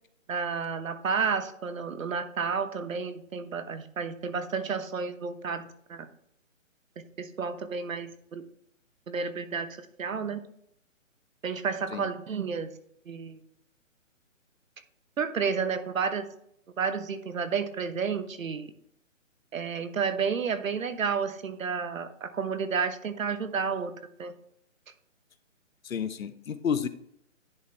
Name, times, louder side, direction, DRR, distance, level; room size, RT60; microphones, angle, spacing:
voice 1, 0.3-6.1 7.2-8.4 9.1-9.7 10.0-10.4 11.4-12.7 13.1-13.4 15.2-16.3 16.8-18.7 19.5-23.9 24.2-24.3, right 5 dB, 80° right, 10 dB, 1.1 m, -31 dB
voice 2, 25.8-26.9, left 7 dB, 90° left, 13 dB, 0.8 m, -30 dB
10.0 x 4.3 x 3.3 m, 0.70 s
hypercardioid pair, 170°, 39 cm